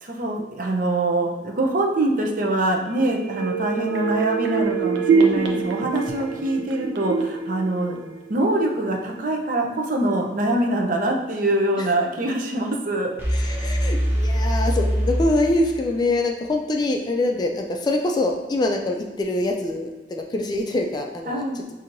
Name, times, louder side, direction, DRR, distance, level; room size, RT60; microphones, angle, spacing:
voice 1, 0.0-8.0 8.3-13.1 21.3-21.6, right 1 dB, 50° right, 1 dB, 0.6 m, -24 dB
sound 1, 2.9-8.6 8.9-9.0, right 5 dB, 85° right, 0.6 m, -25 dB
sound 2, 13.2-16.1, equal, 15° right, 0.7 m, -23 dB
voice 2, 13.3-21.4, left 2 dB, 25° left, 2 dB, 0.3 m, -24 dB
6.0 x 2.7 x 2.6 m, 1.2 s
head